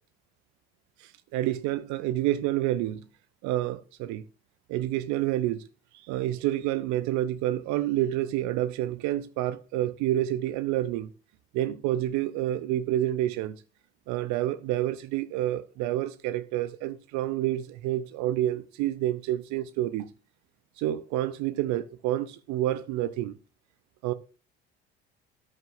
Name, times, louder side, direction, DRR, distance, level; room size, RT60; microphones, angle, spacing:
voice 1, 1.0-3.1 3.4-4.3 4.7-5.7 5.9-11.1 11.5-13.6 14.1-20.1 20.8-23.4 24.0-24.1, right 13 dB, 60° right, 0.7 m, -28 dB
13.5 x 9.9 x 2.6 m
hypercardioid pair, 55°, 32 cm